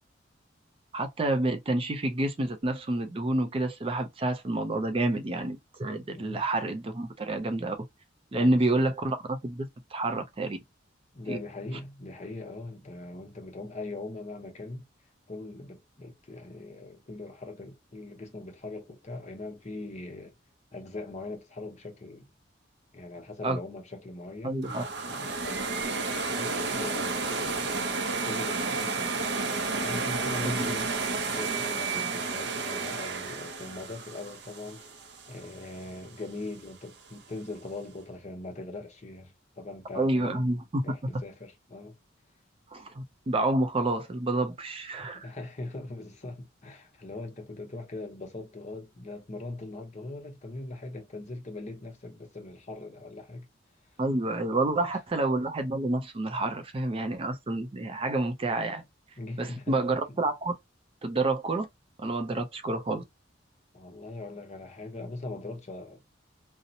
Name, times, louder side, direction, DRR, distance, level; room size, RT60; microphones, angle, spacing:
voice 1, 0.9-7.8 8.3-10.6 11.3-11.4 23.4-23.6 24.4-24.8 39.9-40.8 42.7-45.3 54.0-58.8 59.4-60.5 61.0-61.7 62.0-63.0, right 2 dB, 30° right, 0.4 m, -28 dB
voice 2, 8.3-8.9 11.1-14.8 15.3-20.3 20.7-22.3 22.9-25.6 26.1-29.1 29.7-30.9 31.3-34.9 35.3-42.0 45.2-53.5 54.5-55.0 59.2-60.2 63.7-66.2, left 2 dB, 35° left, 0.7 m, -41 dB
sound 1, 24.6-35.6, right 4 dB, 60° right, 0.6 m, -31 dB
2.7 x 2.0 x 2.6 m
head